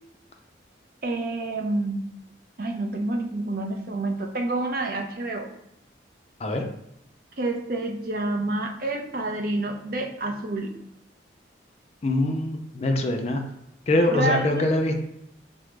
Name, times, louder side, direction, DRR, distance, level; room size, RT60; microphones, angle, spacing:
voice 1, 1.0-2.0 2.6-5.5 7.4-10.7 14.1-14.7, right 2 dB, 50° right, 3 dB, 0.5 m, -28 dB
voice 2, 12.0-13.4 13.9-15.0, left 1 dB, 35° left, 4 dB, 0.4 m, -23 dB
4.8 x 2.0 x 3.2 m, 0.80 s
head